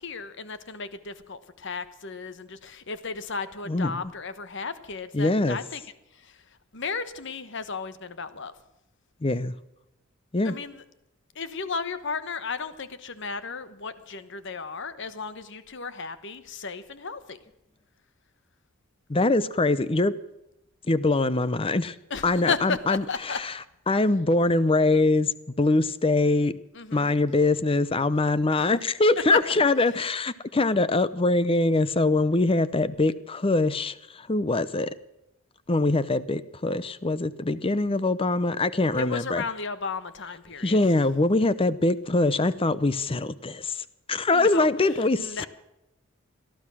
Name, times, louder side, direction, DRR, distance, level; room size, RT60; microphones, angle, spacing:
voice 1, 0.0-5.8 6.1-6.4 6.7-8.5 10.4-10.8 11.3-17.4 22.1-23.4 26.7-27.1 29.3-29.4 38.9-40.8 44.3-44.7 45.2-45.5, left 5 dB, 55° left, 13 dB, 1.1 m, -34 dB
voice 2, 3.7-4.0 5.1-5.6 9.2-9.5 10.3-10.5 19.1-20.1 20.9-22.0 22.2-23.5 23.9-26.5 26.9-34.9 35.7-39.4 40.6-45.4, left 2 dB, 25° left, 16 dB, 0.6 m, -23 dB
18.0 x 13.0 x 6.2 m, 0.90 s
head